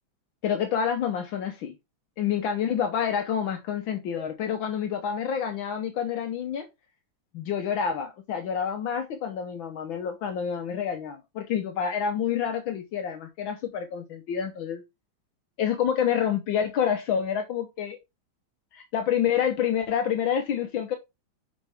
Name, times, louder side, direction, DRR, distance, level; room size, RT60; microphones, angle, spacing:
voice 1, 0.4-1.7 2.2-6.7 7.3-14.8 15.6-18.0 18.7-21.0, left 8 dB, 70° left, 1.6 m, -28 dB
7.1 x 5.2 x 3.4 m
omnidirectional pair, 2.3 m